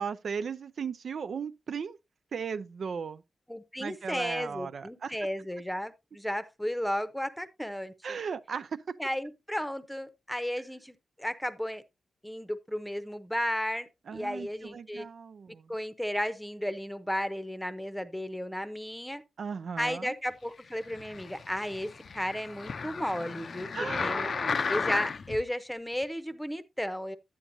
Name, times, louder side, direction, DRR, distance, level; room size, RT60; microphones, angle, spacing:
voice 1, 0.0-2.0 2.3-3.2 3.8-5.2 8.0-9.0 14.1-15.6 19.4-20.1 23.7-24.7, right 6 dB, 60° right, 0.4 m, -36 dB
voice 2, 3.5-8.2 9.0-11.8 12.2-15.1 15.7-19.2 19.8-23.7 24.0-24.3 24.7-27.2, equal, 5° left, 0.8 m, -34 dB
sound 1, 20.8-25.4 26.0-26.1, left 5 dB, 50° left, 0.5 m, -34 dB
11.0 x 8.6 x 2.7 m
wide cardioid pair, 125°, 0 cm